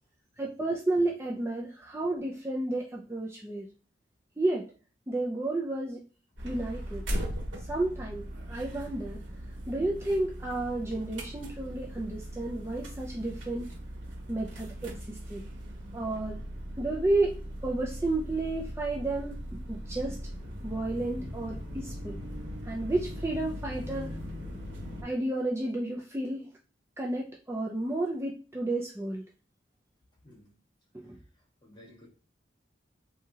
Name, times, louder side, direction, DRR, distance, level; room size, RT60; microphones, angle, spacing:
voice 1, 0.4-3.7 4.4-4.7 5.1-6.0 6.4-7.1 7.7-9.2 9.7-13.7 14.3-15.4 15.9-16.4 16.8-19.4 19.7-20.2 20.6-22.2 22.6-24.2 25.0-26.5 27.0-29.2 30.9-31.2, right 2 dB, 15° right, 0.4 m, -31 dB
sound 1, 6.4-25.0, equal, 85° right, 1.4 m, -39 dB
voice 2, 30.2-30.6 31.1-31.2 31.6-32.1, left 1 dB, 25° left, 1.4 m, -54 dB
3.5 x 2.8 x 2.8 m
head